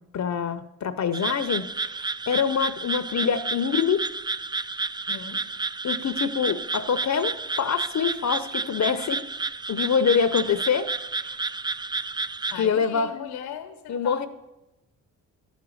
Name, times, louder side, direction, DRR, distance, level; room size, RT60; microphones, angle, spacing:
voice 1, 0.1-1.7 2.3-4.1 5.8-9.2 9.7-10.9 12.6-13.1 13.9-14.3, left 6 dB, 45° left, 12 dB, 0.7 m, -25 dB
sound 1, 1.1-12.7, right 3 dB, 15° right, 0.3 m, -31 dB
voice 2, 5.1-5.5 10.4-10.6 12.5-14.3, left 8 dB, 80° left, 8 dB, 1.1 m, -38 dB
11.5 x 5.2 x 7.2 m, 0.98 s
supercardioid pair, 60°, 37 cm